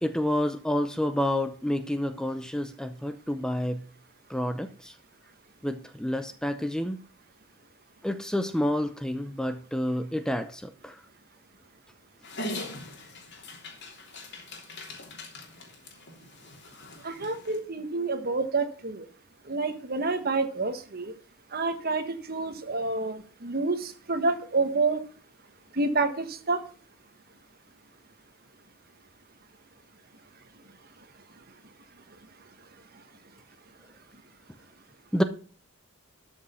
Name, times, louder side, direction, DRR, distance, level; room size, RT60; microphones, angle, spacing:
voice 1, 0.0-3.8 4.3-4.9 5.6-7.0 8.0-10.9 12.4-12.5 35.1-35.2, left 1 dB, 5° left, 10 dB, 0.6 m, -29 dB
Dog, 12.2-17.6, left 1 dB, 55° left, 3.1 m, -41 dB
voice 2, 17.0-19.1 19.5-21.1 21.5-25.0 25.7-26.6, right 3 dB, 45° right, 9 dB, 1.3 m, -28 dB
12.5 x 6.3 x 5.6 m, 0.40 s
head